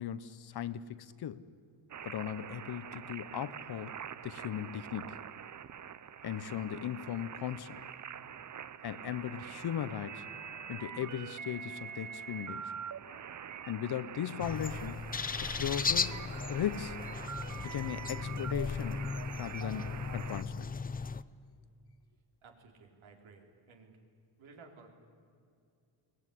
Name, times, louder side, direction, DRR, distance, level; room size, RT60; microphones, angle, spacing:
voice 1, 0.0-1.4 2.0-5.2 6.2-7.8 8.8-10.2 10.7-12.7 13.7-15.0 15.4-16.2 16.5-17.0 17.6-19.1 19.4-20.7, left 10 dB, 50° left, 15 dB, 0.9 m, -38 dB
sound 1, 1.9-20.4, right 8 dB, 35° right, 0.8 m, -45 dB
sound 2, 14.4-21.2, left 5 dB, 20° left, 0.5 m, -36 dB
voice 2, 22.4-24.0 24.4-24.9, right 4 dB, 70° right, 4 dB, 3.8 m, -56 dB
22.5 x 19.5 x 9.9 m, 2.4 s
cardioid pair, 130°, 50 cm